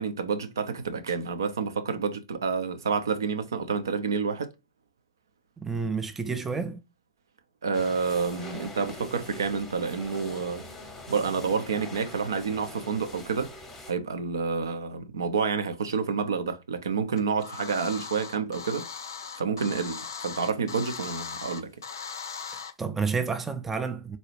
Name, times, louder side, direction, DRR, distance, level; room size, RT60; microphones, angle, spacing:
voice 1, 0.0-4.5 7.6-10.6 11.1-13.5 13.9-18.9 19.4-21.7, right 5 dB, 65° right, 0.5 m, -29 dB
voice 2, 5.6-6.8 22.5-24.2, right 5 dB, 10° right, 0.4 m, -30 dB
sound 1, 7.7-13.9, left 1 dB, 15° left, 0.8 m, -43 dB
sound 2, 17.2-22.7, left 6 dB, 65° left, 0.5 m, -39 dB
4.0 x 2.3 x 3.0 m
figure-of-eight pair, 105°, 2 cm